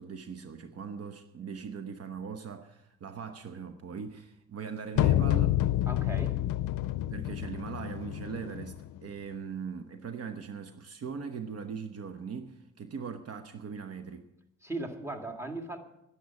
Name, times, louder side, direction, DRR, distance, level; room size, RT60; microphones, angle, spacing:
voice 1, 0.0-5.6 7.1-14.3, right 6 dB, 55° right, 0.9 m, -40 dB
sound 1, 5.0-9.0, left 13 dB, 80° left, 0.5 m, -28 dB
voice 2, 5.9-6.4 14.6-15.8, right 2 dB, 10° right, 2.0 m, -37 dB
11.0 x 10.5 x 7.1 m
cardioid pair, 90°, 30 cm